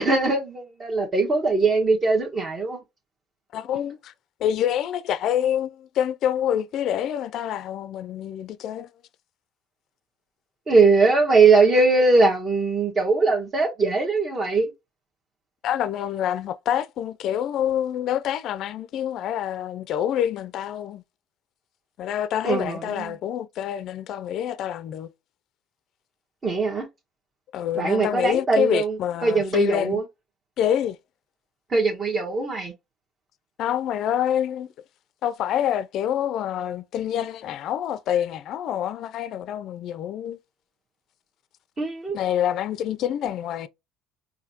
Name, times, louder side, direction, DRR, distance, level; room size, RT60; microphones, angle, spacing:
voice 1, 0.0-2.8 10.7-14.7 22.4-23.1 26.4-26.9 27.7-30.0 31.7-32.7 41.8-42.2, right 3 dB, 30° right, 1.3 m, -21 dB
voice 2, 3.5-4.1 4.4-8.9 15.6-21.0 22.0-25.1 27.5-30.0 30.6-31.0 33.6-34.7 35.2-40.4 42.1-43.7, left 10 dB, 60° left, 0.4 m, -26 dB
4.9 x 2.6 x 2.8 m
supercardioid pair, 95°, 0 cm